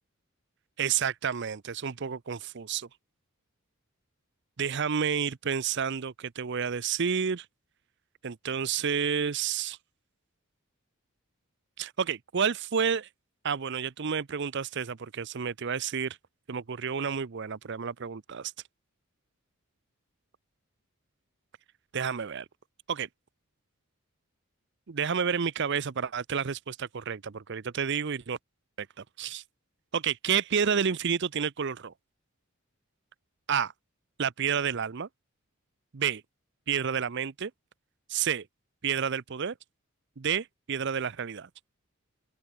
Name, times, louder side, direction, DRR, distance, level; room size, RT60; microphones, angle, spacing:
voice 1, 0.8-2.9 4.6-7.5 8.2-9.8 11.8-13.1 13.4-16.2 16.5-18.5 21.9-22.4 22.9-23.1 24.9-28.4 28.8-29.4 29.9-31.9 33.5-33.7 34.2-35.1 35.9-36.2 36.7-37.5 38.1-38.4 38.8-39.5 40.2-41.5, right 7 dB, 55° right, 0.6 m, -30 dB
open air
head